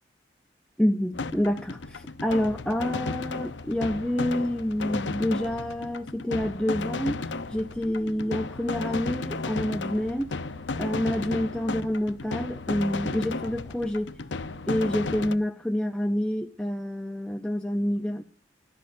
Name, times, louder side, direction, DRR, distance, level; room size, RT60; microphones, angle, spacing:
voice 1, 0.8-10.3 10.8-14.2 14.7-18.2, left 1 dB, 5° left, 0.6 m, -28 dB
sound 1, 1.1-15.4, left 3 dB, 80° left, 0.7 m, -34 dB
21.5 x 12.5 x 2.6 m
head